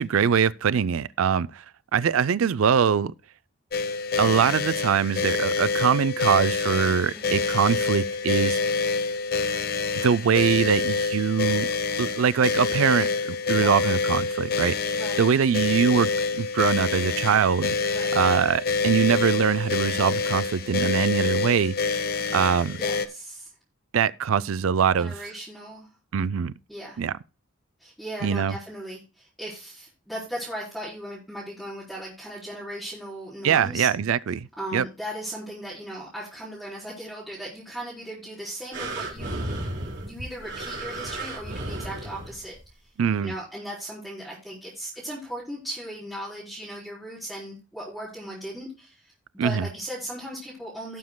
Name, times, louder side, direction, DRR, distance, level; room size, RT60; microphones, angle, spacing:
voice 1, 0.0-1.6 1.9-3.1 4.2-8.8 10.0-11.7 12.0-21.8 22.3-22.8 23.9-25.1 26.1-26.5 27.0-27.1 28.2-28.5 33.4-34.9 43.0-43.3 49.4-49.7, right 7 dB, 90° right, 0.4 m, -23 dB
sound 1, 3.7-23.1, left 4 dB, 45° left, 0.9 m, -27 dB
voice 2, 22.7-23.5 25.0-25.9 26.7-27.0 27.8-33.9 34.6-39.5 40.0-42.9 43.2-51.0, equal, ahead, 4.2 m, -37 dB
sound 2, 38.7-42.6 43.3-43.4, right 2 dB, 55° right, 4.5 m, -34 dB
18.0 x 7.3 x 2.2 m
head